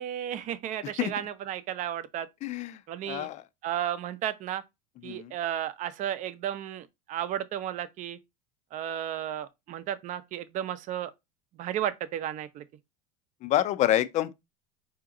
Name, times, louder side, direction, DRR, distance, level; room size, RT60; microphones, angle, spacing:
voice 1, 0.0-2.3 2.9-3.3 3.6-4.6 5.0-8.2 8.7-11.1 11.6-12.6, right 11 dB, 40° right, 0.6 m, -33 dB
voice 2, 2.4-2.8 3.1-3.4 5.0-5.3 13.4-14.3, left 13 dB, 40° left, 0.5 m, -27 dB
4.8 x 2.9 x 3.7 m
supercardioid pair, 125°, 19 cm